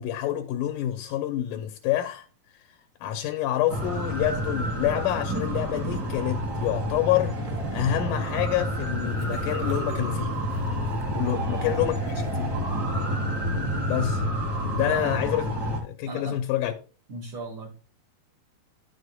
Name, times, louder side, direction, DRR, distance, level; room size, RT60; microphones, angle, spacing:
voice 1, 0.0-2.3 3.0-7.3 7.7-10.4 11.1-12.5 13.9-14.2 14.7-15.5 15.8-16.7, left 13 dB, 80° left, 1.9 m, -27 dB
sound 1, 3.7-15.8, equal, 40° right, 1.8 m, -29 dB
Train, 7.5-12.8, right 7 dB, 80° right, 2.6 m, -43 dB
voice 2, 11.2-11.9 14.8-15.2 16.1-16.4 17.1-17.8, right 3 dB, 60° right, 2.3 m, -37 dB
10.5 x 6.3 x 2.3 m
omnidirectional pair, 4.1 m